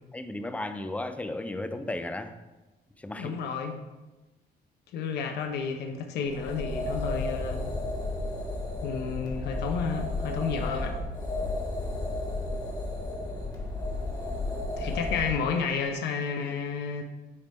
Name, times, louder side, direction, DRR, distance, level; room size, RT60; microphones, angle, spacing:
voice 1, 0.1-2.4 3.0-3.4 11.4-11.6 14.8-14.9, left 2 dB, 10° left, 9 dB, 0.4 m, -35 dB
voice 2, 3.2-3.7 4.9-7.7 8.8-11.0 14.8-17.0, left 5 dB, 80° left, 4 dB, 0.8 m, -31 dB
sound 1, 6.2-15.4, left 2 dB, 25° left, 1.6 m, -33 dB
9.8 x 3.5 x 4.2 m, 1.1 s
cardioid pair, 150°, 17 cm